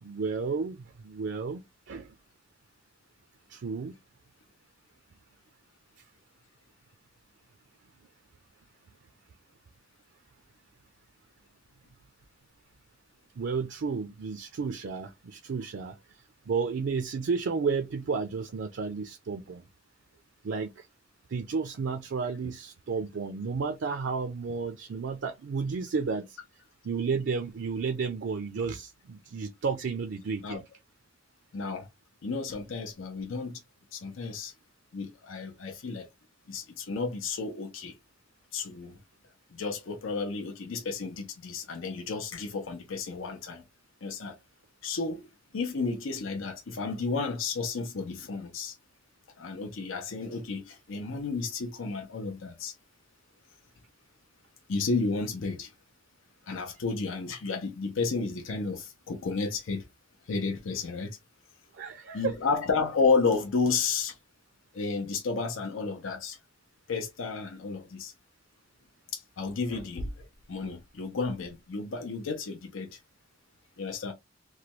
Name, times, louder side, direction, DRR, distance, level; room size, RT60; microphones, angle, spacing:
voice 1, 0.0-1.6 1.9-2.1 3.5-3.9 13.4-19.7 20.4-20.9 21.3-26.4 26.8-30.6 61.7-62.4 69.7-69.8, right 5 dB, 65° right, 0.4 m, -32 dB
voice 2, 31.5-31.9 32.2-33.6 33.9-34.5 34.9-36.1 36.5-38.0 38.5-39.0 39.5-43.6 44.0-44.4 44.8-45.3 45.5-48.8 49.4-52.7 54.7-55.7 56.5-59.8 60.3-61.2 62.1-64.2 64.7-66.4 66.9-68.1 69.1-73.0 73.8-74.1, left 4 dB, 85° left, 0.6 m, -32 dB
3.1 x 2.2 x 2.9 m
head